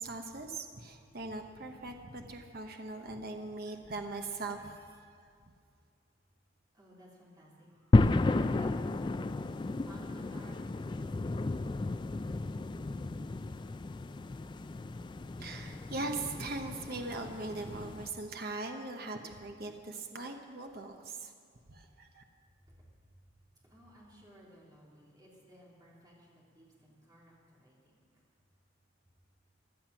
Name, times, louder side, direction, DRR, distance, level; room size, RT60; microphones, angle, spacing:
voice 1, 0.0-5.3 15.4-21.3 21.7-22.2, right 2 dB, 50° right, 4 dB, 1.0 m, -40 dB
voice 2, 6.7-11.7 22.7-22.9 23.3-23.4 23.6-28.0, right 1 dB, 20° right, -5 dB, 3.6 m, -57 dB
sound 1, 7.9-18.1, left 2 dB, 25° left, 0.3 m, -32 dB
16.5 x 11.5 x 6.0 m, 2.4 s
head